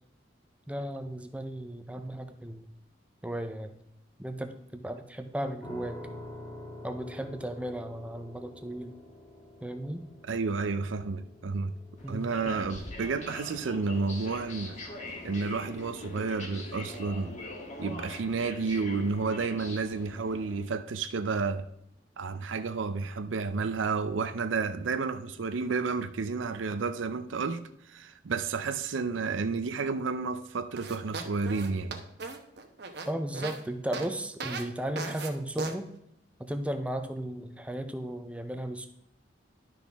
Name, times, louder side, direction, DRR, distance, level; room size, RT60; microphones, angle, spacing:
voice 1, 0.7-2.7 3.2-3.7 4.2-6.0 6.8-8.9 9.6-10.0 12.0-12.3 33.1-35.9 36.4-38.9, right 1 dB, 5° right, 0.5 m, -35 dB
sound 1, 5.6-18.5, left 1 dB, 15° left, 1.5 m, -49 dB
voice 2, 10.3-11.7 12.1-14.8 15.2-17.4 17.8-21.7 22.2-27.6 27.9-32.0, right 4 dB, 85° right, 0.5 m, -31 dB
sound 2, 12.0-20.6, left 2 dB, 40° left, 1.5 m, -42 dB
sound 3, 30.8-33.6 33.9-34.1 34.4-34.6 35.0-35.3 35.6-35.7, right 4 dB, 60° right, 1.0 m, -37 dB
11.5 x 6.1 x 3.5 m
head